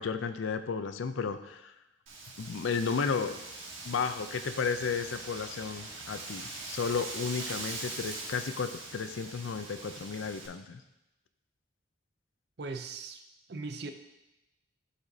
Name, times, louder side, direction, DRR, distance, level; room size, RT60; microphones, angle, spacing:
voice 1, 0.0-1.8 2.4-3.4 3.8-10.8, left 5 dB, 80° left, 10 dB, 0.5 m, -33 dB
Wind, 2.1-10.5, right 2 dB, 90° right, 1.5 m, -42 dB
voice 2, 12.6-13.2 13.5-13.9, right 3 dB, 55° right, 7 dB, 0.5 m, -38 dB
11.5 x 5.0 x 2.7 m, 0.93 s
head